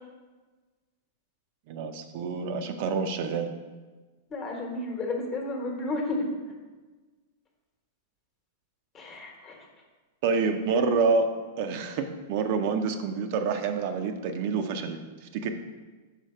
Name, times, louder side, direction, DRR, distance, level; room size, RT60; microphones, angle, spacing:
voice 1, 1.7-3.5 10.2-11.3 11.6-15.5, right 4 dB, 55° right, 6 dB, 0.5 m, -27 dB
voice 2, 4.3-6.3 8.9-9.7, left 2 dB, 25° left, 1 dB, 1.2 m, -32 dB
5.5 x 5.0 x 4.3 m, 1.3 s
supercardioid pair, 140°, 0 cm